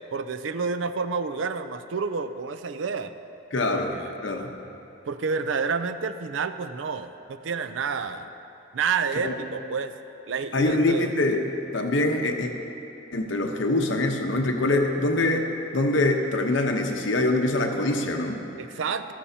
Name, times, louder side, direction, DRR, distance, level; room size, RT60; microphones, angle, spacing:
voice 1, 0.1-3.1 3.7-4.2 5.1-8.3 8.7-9.9 10.3-11.1 18.6-19.1, right 5 dB, 80° right, 10 dB, 0.5 m, -29 dB
voice 2, 3.5-3.9 4.2-4.5 9.2-9.3 10.5-11.5 11.7-12.5 13.1-18.4, left 2 dB, 80° left, 3 dB, 0.9 m, -24 dB
13.5 x 12.5 x 2.8 m, 2.8 s
head